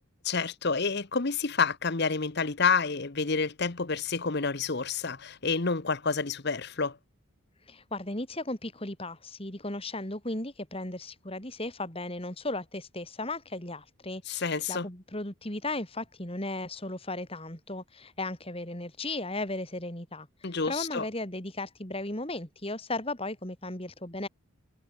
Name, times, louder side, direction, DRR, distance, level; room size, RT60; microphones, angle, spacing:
voice 1, 0.2-7.0 14.3-14.9 20.4-21.1, left 4 dB, 50° left, 1.0 m, -29 dB
voice 2, 7.7-20.3 20.7-24.3, left 2 dB, 25° left, 3.3 m, -36 dB
head